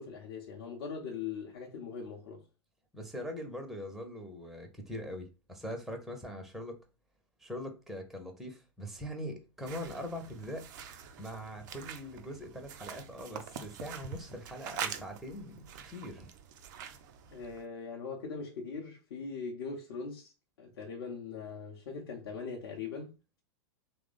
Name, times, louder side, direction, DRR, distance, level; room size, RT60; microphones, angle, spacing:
voice 1, 0.0-2.4 17.3-20.3 20.6-23.1, left 5 dB, 55° left, 0.8 m, -41 dB
voice 2, 2.9-6.8 7.4-10.7 11.2-16.3, equal, ahead, 0.6 m, -42 dB
sound 1, 9.6-17.6, right 8 dB, 45° right, 0.5 m, -45 dB
2.9 x 2.0 x 4.0 m
figure-of-eight pair, 100°, 14 cm